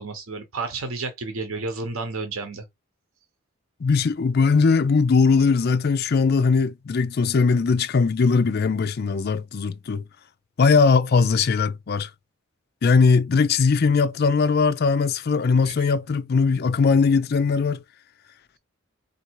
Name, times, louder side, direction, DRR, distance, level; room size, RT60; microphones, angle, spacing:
voice 1, 0.0-2.7 15.6-15.9, right 3 dB, 90° right, 0.9 m, -31 dB
voice 2, 3.8-10.0 10.6-12.1 12.8-17.8, left 4 dB, 50° left, 0.4 m, -20 dB
3.8 x 2.7 x 4.5 m
head